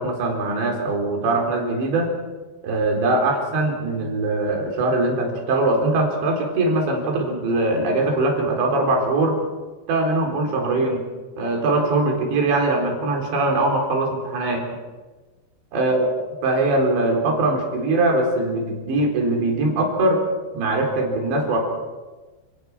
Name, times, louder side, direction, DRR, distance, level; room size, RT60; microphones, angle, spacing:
voice 1, 0.0-2.1 2.6-9.4 9.9-11.0 11.4-14.6 15.7-16.1 16.4-20.2 20.5-21.6, right 2 dB, 75° right, 1 dB, 6.3 m, -21 dB
29.0 x 18.5 x 6.1 m, 1.3 s
omnidirectional pair, 5.2 m